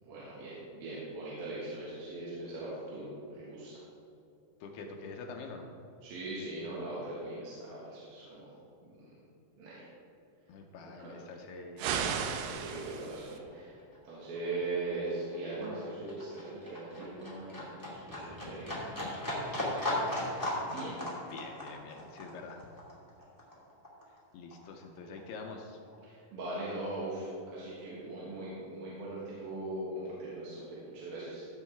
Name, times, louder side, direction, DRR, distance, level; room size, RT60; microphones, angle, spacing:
voice 1, 0.0-3.7 6.0-8.5 8.8-9.1 9.6-9.7 10.8-11.2 12.5-13.8 14.0-21.0 26.0-31.4, right 2 dB, 65° right, -8 dB, 3.4 m, -40 dB
voice 2, 4.6-5.7 10.5-11.9 21.3-22.7 24.3-25.8, left 4 dB, 80° left, 2 dB, 2.7 m, -45 dB
sound 1, 11.8-13.4, right 7 dB, 85° right, 2.0 m, -34 dB
Livestock farm animals working animals, 13.2-24.2 24.5-25.5 25.8-25.9, left 1 dB, 10° left, 1.4 m, -37 dB
15.5 x 7.4 x 3.6 m, 2.7 s
omnidirectional pair, 4.8 m